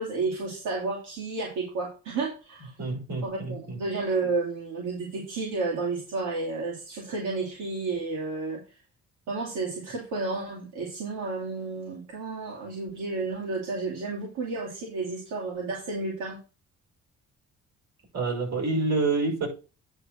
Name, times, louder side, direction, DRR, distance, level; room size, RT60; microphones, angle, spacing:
voice 1, 0.0-2.8 3.2-8.6 9.3-16.4, right 3 dB, 85° right, -3 dB, 2.5 m, -31 dB
voice 2, 2.8-3.8 18.1-19.5, right 3 dB, 60° right, 0 dB, 5.6 m, -27 dB
9.9 x 3.7 x 6.2 m, 0.33 s
cardioid pair, 90°, 30 cm